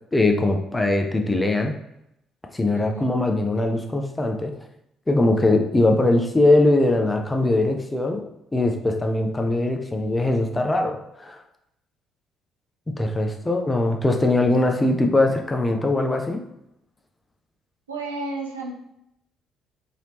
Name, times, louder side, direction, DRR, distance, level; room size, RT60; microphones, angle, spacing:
voice 1, 0.1-1.8 2.5-4.5 5.1-8.2 8.5-11.4 13.0-16.4, left 2 dB, 15° left, 3 dB, 0.5 m, -21 dB
voice 2, 2.7-3.2 13.4-13.6 17.9-18.7, right 2 dB, 85° right, -2 dB, 0.5 m, -33 dB
3.0 x 2.8 x 2.9 m, 0.81 s
figure-of-eight pair, 45°, 0 cm